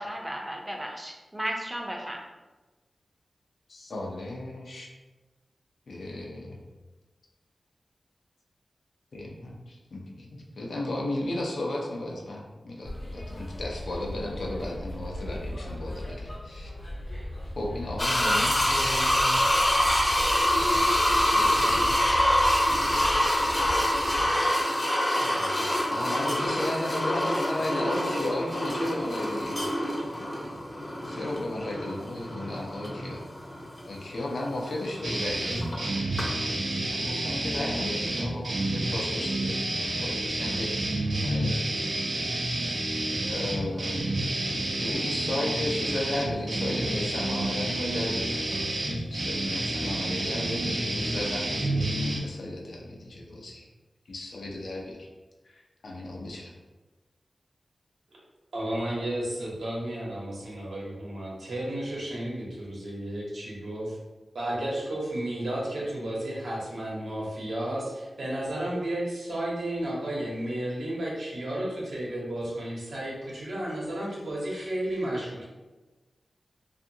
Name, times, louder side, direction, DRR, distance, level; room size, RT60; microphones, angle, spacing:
voice 1, 0.0-2.2, right 1 dB, 15° right, 0 dB, 0.5 m, -34 dB
voice 2, 3.7-4.9 5.9-6.6 9.1-16.7 17.6-19.4 21.2-22.0 22.5-23.0 25.2-29.7 31.0-33.3 33.8-35.9 36.9-40.7 41.2-41.6 41.8-42.2 43.2-44.1 44.8-53.7 54.1-55.1 55.4-56.5, left 1 dB, 75° left, -1 dB, 0.5 m, -35 dB
sound 1, 12.8-24.3, equal, 60° left, 0.9 m, -38 dB
sound 2, 18.0-35.8 36.2-36.3, left 1 dB, 35° left, 0.6 m, -26 dB
sound 3, 35.0-52.2, right 1 dB, 65° right, 0.5 m, -29 dB
voice 3, 58.5-64.0 64.3-75.5, right 1 dB, 80° right, -5 dB, 0.9 m, -32 dB
2.5 x 2.4 x 2.7 m, 1.2 s
wide cardioid pair, 60°, 0 cm